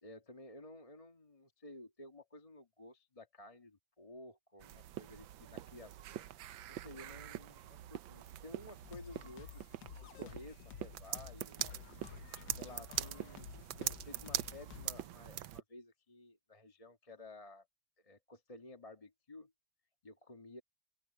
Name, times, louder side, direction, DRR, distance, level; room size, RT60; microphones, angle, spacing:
voice 1, 0.0-6.3 6.7-9.7 10.0-11.7 12.5-17.7 18.0-19.5 20.0-20.6, left 1 dB, 20° left, 1.5 m, -54 dB
sound 1, 4.6-15.6, right 12 dB, 90° right, 1.5 m, -43 dB
sound 2, 8.8-15.1, left 8 dB, 70° left, 1.6 m, -52 dB
open air
omnidirectional pair, 2.0 m